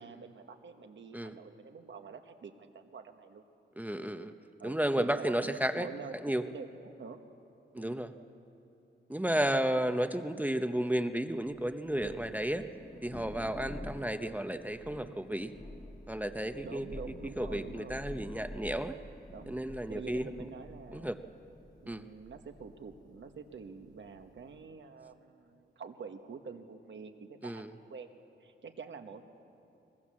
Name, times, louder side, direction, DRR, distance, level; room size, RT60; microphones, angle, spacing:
voice 1, 0.0-3.4 4.6-7.2 7.7-8.0 9.4-9.6 16.6-18.0 19.3-21.1 21.8-28.1 28.4-29.2, right 5 dB, 70° right, 6 dB, 1.4 m, -47 dB
voice 2, 3.8-4.3 4.6-5.9 6.2-6.4 7.7-8.1 9.1-12.6 13.0-15.5 16.1-16.8 17.4-18.9 19.5-20.5 20.9-21.2 21.9-22.1 27.4-27.7, right 1 dB, 10° right, 8 dB, 0.8 m, -33 dB
Thunder, 11.5-24.7, left 1 dB, 20° left, 1.5 m, -49 dB
22.5 x 20.5 x 7.5 m, 2.8 s
wide cardioid pair, 115°, 20 cm